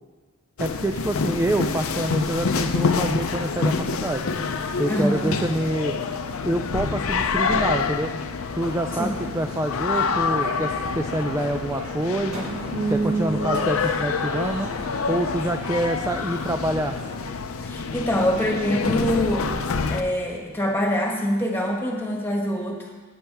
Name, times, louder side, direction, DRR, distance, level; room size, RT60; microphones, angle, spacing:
sound 1, 0.6-20.0, left 4 dB, 80° left, 0.6 m, -27 dB
voice 1, 0.6-4.2 4.8-6.0 6.4-8.1 8.5-12.5 12.9-14.7 15.1-17.0, right 1 dB, 15° right, 5 dB, 0.4 m, -26 dB
voice 2, 4.9-5.3 8.9-9.1 17.6-19.5 19.9-22.9, equal, 10° left, -1 dB, 1.6 m, -25 dB
sound 2, 8.5-17.2, right 3 dB, 75° right, 1.6 m, -34 dB
15.0 x 8.5 x 3.5 m, 1.4 s
head